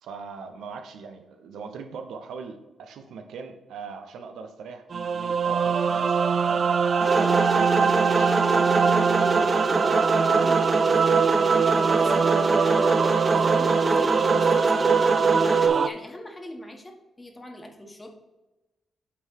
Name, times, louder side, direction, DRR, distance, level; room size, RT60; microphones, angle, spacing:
voice 1, 0.0-8.4 8.7-9.5, right 5 dB, 80° right, 6 dB, 0.7 m, -40 dB
sound 1, 4.9-15.9, right 6 dB, 55° right, 0.4 m, -22 dB
sound 2, 7.0-15.7, right 2 dB, 30° right, 1.4 m, -26 dB
voice 2, 10.2-18.2, left 1 dB, 25° left, 3 dB, 1.5 m, -43 dB
8.4 x 3.8 x 4.7 m, 1.1 s
supercardioid pair, 60°, 0 cm